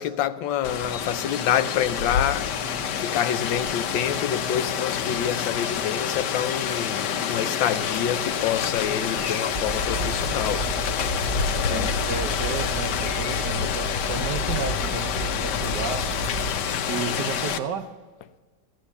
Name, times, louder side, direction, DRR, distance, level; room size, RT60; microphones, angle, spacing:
voice 1, 0.0-2.5 3.0-10.7 11.6-11.9, left 10 dB, 85° left, 1.4 m, -27 dB
Rain, 0.6-17.6, left 7 dB, 70° left, 1.3 m, -27 dB
sound 1, 8.1-16.6, right 1 dB, 20° left, 1.5 m, -32 dB
voice 2, 11.7-16.1 16.9-17.9, right 6 dB, 70° right, 1.3 m, -33 dB
14.5 x 9.0 x 7.1 m
omnidirectional pair, 2.1 m